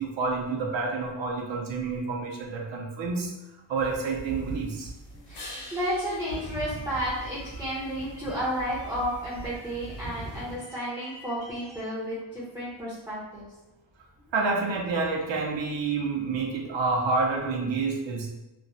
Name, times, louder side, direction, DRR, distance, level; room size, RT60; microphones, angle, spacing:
voice 1, 0.0-3.3 3.7-4.9 14.3-18.3, right 4 dB, 70° right, 0 dB, 0.6 m, -28 dB
sound 1, 3.7-10.6, right 2 dB, 75° left, 1.4 m, -41 dB
voice 2, 5.1-13.5, equal, 5° right, -8 dB, 0.5 m, -32 dB
sound 2, 5.3-7.9 13.6-17.6, left 2 dB, 55° left, 0.7 m, -49 dB
3.0 x 2.0 x 2.6 m, 0.97 s
wide cardioid pair, 160°, 47 cm